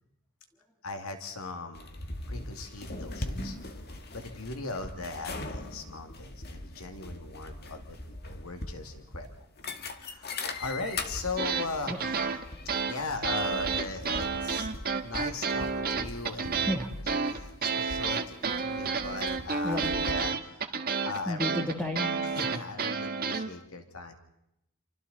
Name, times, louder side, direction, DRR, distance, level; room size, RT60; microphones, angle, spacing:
voice 1, 0.8-1.9 2.3-3.6 4.1-9.3 10.0-10.3 10.6-12.0 12.9-16.6 17.1-21.4 22.2-24.1, left 3 dB, 70° left, 5 dB, 2.4 m, -39 dB
sound 1, 1.7-20.1, left 2 dB, 45° left, 1.8 m, -41 dB
sound 2, 11.4-23.5, right 5 dB, 45° right, 1.6 m, -30 dB
voice 2, 11.9-12.4 16.6-16.9 19.6-20.1 20.8-22.1, left 1 dB, 5° left, 0 dB, 2.7 m, -34 dB
29.0 x 24.5 x 4.1 m, 0.80 s
head